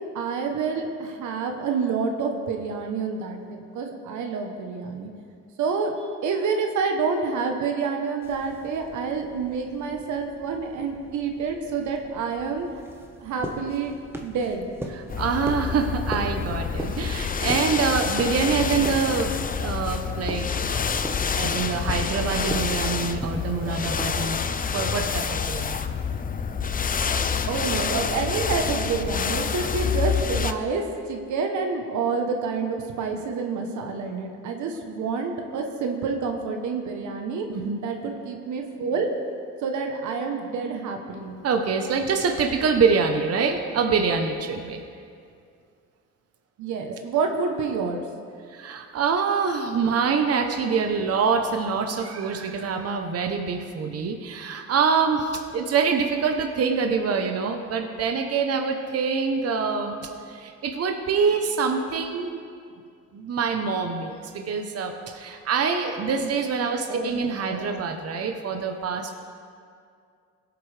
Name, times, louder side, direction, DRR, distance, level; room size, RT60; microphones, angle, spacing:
voice 1, 0.1-5.1 5.6-12.7 13.2-14.7 27.5-37.5 37.8-39.1 39.6-41.4 46.6-48.0 66.9-67.6, right 5 dB, 80° right, 4 dB, 1.1 m, -28 dB
sound 1, 8.2-25.3, right 1 dB, 10° right, 1.2 m, -40 dB
sound 2, 15.1-30.5, left 6 dB, 30° left, 0.5 m, -27 dB
voice 2, 15.2-19.3 19.6-20.5 21.4-24.4 24.7-25.8 37.5-37.8 41.4-44.8 48.5-62.4 63.1-69.1, right 5 dB, 55° right, 5 dB, 1.0 m, -25 dB
17.5 x 7.8 x 3.4 m, 2.3 s
cardioid pair, 85°, 29 cm